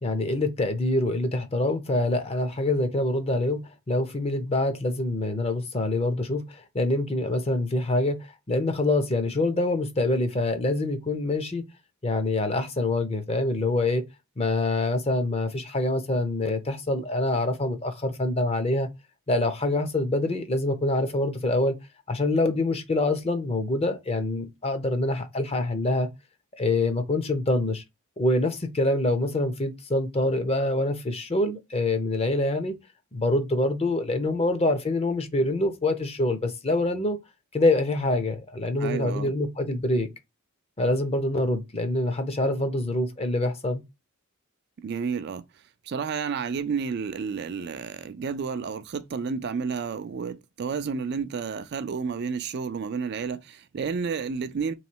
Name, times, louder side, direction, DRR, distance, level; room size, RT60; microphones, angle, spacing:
voice 1, 0.0-8.2 8.5-11.6 12.0-14.0 14.4-18.9 19.3-21.7 22.1-26.1 26.6-27.8 28.2-32.7 33.1-37.2 37.5-40.1 40.8-43.8, left 2 dB, 25° left, 0.6 m, -25 dB
voice 2, 38.8-39.3 44.8-45.4 45.8-54.7, right 5 dB, 50° right, 0.4 m, -31 dB
3.1 x 3.1 x 4.4 m
head